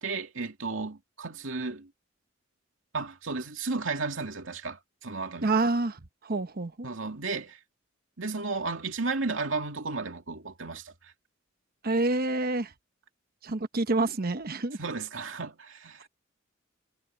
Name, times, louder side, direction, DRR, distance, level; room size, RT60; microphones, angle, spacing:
voice 1, 0.0-1.9 2.9-5.5 6.8-7.6 8.2-11.1 14.8-16.1, right 3 dB, 75° right, 2.6 m, -34 dB
voice 2, 5.4-6.9 11.8-12.7 13.4-14.8, right 2 dB, 50° right, 1.0 m, -28 dB
head